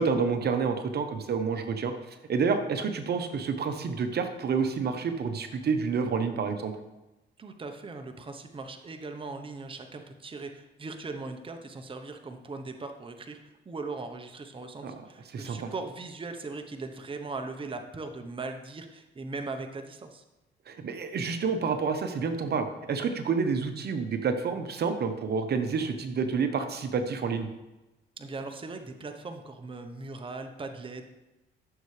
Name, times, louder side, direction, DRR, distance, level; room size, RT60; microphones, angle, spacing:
voice 1, 0.0-1.9 2.3-6.7 14.8-14.9 15.3-15.7 20.7-27.5, right 5 dB, 55° right, 7 dB, 0.9 m, -29 dB
voice 2, 7.4-20.2 28.2-31.1, right 3 dB, 25° right, 5 dB, 0.9 m, -39 dB
14.0 x 6.7 x 3.3 m, 1.0 s
cardioid pair, 90°, 20 cm